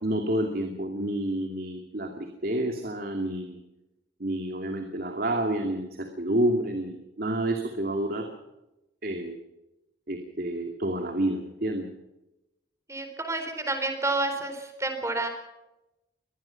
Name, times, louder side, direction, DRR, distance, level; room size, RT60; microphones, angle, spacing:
voice 1, 0.0-3.6 4.2-8.3 9.0-9.4 10.1-11.9, right 1 dB, 55° right, 5 dB, 2.5 m, -29 dB
voice 2, 12.9-15.3, right 2 dB, 15° right, 6 dB, 4.2 m, -29 dB
24.0 x 19.5 x 5.8 m, 0.96 s
head